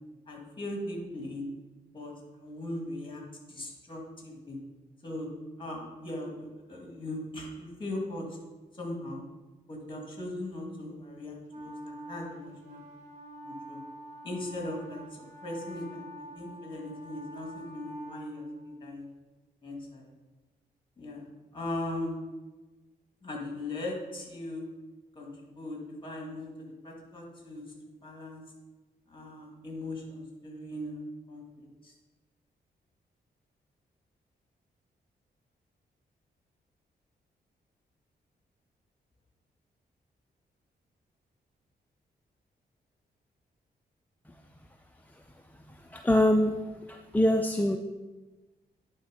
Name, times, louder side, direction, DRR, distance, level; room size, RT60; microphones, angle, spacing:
voice 1, 0.3-1.5 1.9-3.2 3.5-4.6 5.0-5.3 5.6-8.3 8.7-9.2 9.7-12.8 13.4-13.8 14.2-19.1 19.6-20.1 21.0-21.2 21.5-22.2 23.2-24.7 25.2-27.6 28.0-28.4 29.1-31.9, left 1 dB, 30° left, 0 dB, 2.1 m, -39 dB
Wind instrument woodwind instrument, 11.5-19.0, right 1 dB, 40° right, 1.7 m, -46 dB
voice 2, 45.9-46.6 46.9-47.8, left 1 dB, 10° left, 4 dB, 0.4 m, -24 dB
9.9 x 3.4 x 5.2 m, 1.2 s
cardioid pair, 85°, 17 cm